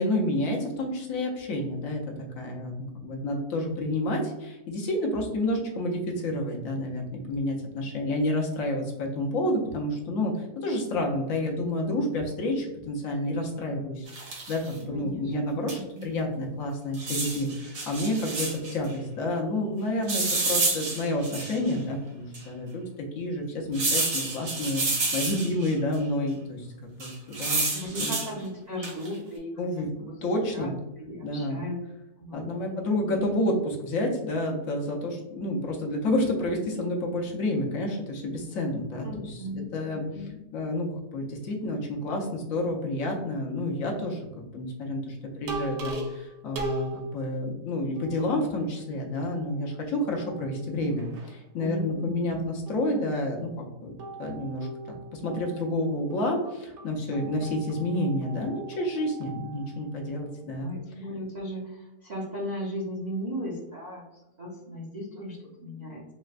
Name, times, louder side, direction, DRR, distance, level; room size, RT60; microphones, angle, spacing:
voice 1, 0.0-2.0 2.3-22.8 23.1-26.7 27.0-27.7 28.0-28.1 29.6-29.9 30.2-30.7 31.2-31.6 32.3-39.4 39.7-40.0 40.5-53.9 54.2-54.7 55.1-60.7, left 1 dB, 70° left, 0 dB, 1.1 m, -29 dB
sound 1, 14.1-14.7 15.7-16.0 16.9-18.8 20.1-21.7 22.3-22.4 23.7-25.7 27.0-28.3 28.8-29.1, right 3 dB, 70° right, 1.3 m, -29 dB
voice 2, 14.9-16.1 27.7-30.2 30.5-30.7 31.0-31.8 32.2-33.0 39.0-40.4 51.6-52.4 60.6-66.0, equal, 50° right, -5 dB, 0.5 m, -37 dB
sound 2, 45.5-47.4 48.0-48.8 49.2-49.8 50.1-51.4 52.7-53.5 54.0-60.2, right 1 dB, 85° right, 1.1 m, -40 dB
4.2 x 2.1 x 2.3 m, 0.96 s
omnidirectional pair, 1.6 m